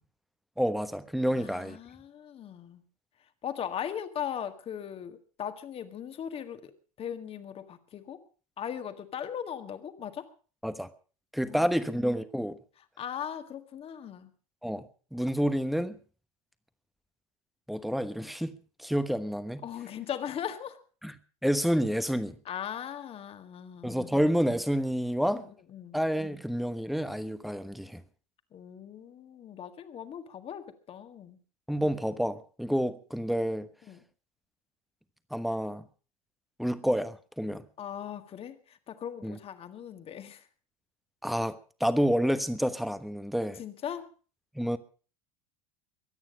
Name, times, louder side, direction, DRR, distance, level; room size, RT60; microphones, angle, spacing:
voice 1, 0.6-1.8 10.6-10.9 11.3-12.6 14.6-14.8 15.1-16.0 17.7-19.6 21.0-21.1 21.4-22.4 23.8-25.4 25.9-28.0 31.7-33.7 35.3-35.8 36.6-37.6 39.2-39.4 41.2-43.6 44.5-44.8, equal, ahead, 1.2 m, -29 dB
voice 2, 1.3-2.8 3.4-6.7 7.0-8.2 8.6-10.3 11.5-11.7 13.0-14.3 19.6-20.8 22.5-24.2 25.3-26.0 28.5-31.4 33.9-34.0 37.8-40.5 43.6-44.1, left 9 dB, 35° left, 1.8 m, -39 dB
23.0 x 9.5 x 5.2 m
figure-of-eight pair, 75°, 18 cm